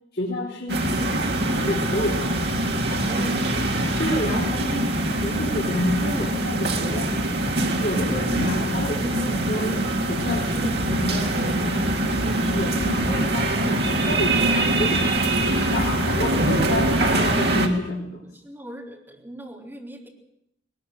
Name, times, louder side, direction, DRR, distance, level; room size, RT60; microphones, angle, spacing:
voice 1, 0.1-1.3 1.7-2.4 2.9-3.0 4.0-7.1 7.8-14.4 14.8-15.1 15.7-18.3, left 1 dB, 55° left, -3 dB, 3.9 m, -29 dB
sound 1, 0.7-17.7, right 1 dB, 60° right, 2.9 m, -23 dB
voice 2, 3.0-3.9 15.5-15.8 18.3-20.1, right 1 dB, 10° right, -1 dB, 4.2 m, -38 dB
20.5 x 20.5 x 7.9 m, 0.75 s
head